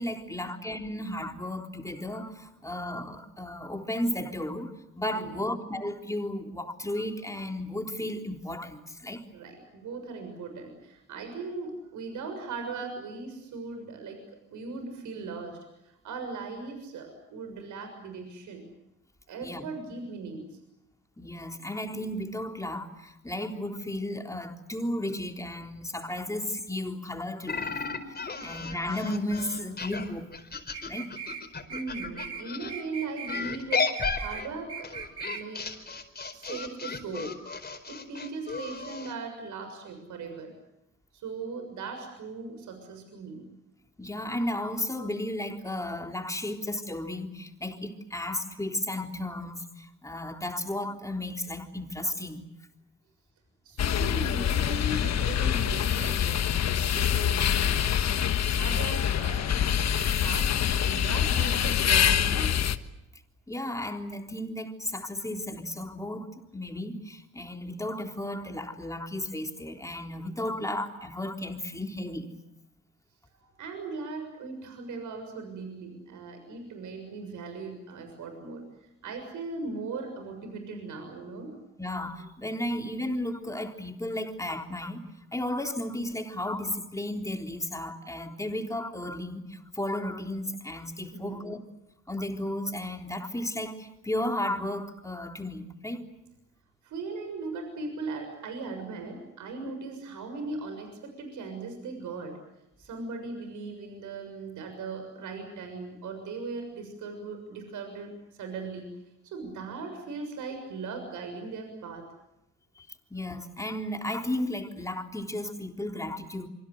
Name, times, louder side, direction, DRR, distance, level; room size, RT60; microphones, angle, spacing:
voice 1, 0.0-4.7 5.0-9.2 19.4-19.6 21.2-27.8 28.2-30.3 30.9-31.1 44.0-52.5 63.5-66.3 66.5-72.4 81.8-85.0 85.3-91.6 92.1-96.0 112.8-116.5, left 1 dB, 10° left, 4 dB, 3.6 m, -34 dB
voice 2, 9.3-14.2 14.5-18.6 19.3-20.4 31.7-34.9 35.3-35.6 36.3-37.3 37.9-40.5 41.1-43.4 53.6-56.5 56.8-57.9 58.5-60.5 60.8-62.6 73.3-81.5 91.1-91.5 96.8-102.4 102.8-108.9 109.2-112.0, right 3 dB, 80° right, 6 dB, 6.8 m, -39 dB
sound 1, 27.5-32.7 33.3-39.1, left 4 dB, 30° left, 4.7 m, -34 dB
sound 2, 30.7-31.4 31.7-32.4 32.7-33.4 33.7-34.4 34.7-35.4, right 7 dB, 50° right, 3.3 m, -39 dB
sound 3, 53.8-62.8, left 9 dB, 60° left, 1.5 m, -25 dB
26.5 x 25.5 x 8.0 m, 0.88 s
cardioid pair, 90°, 30 cm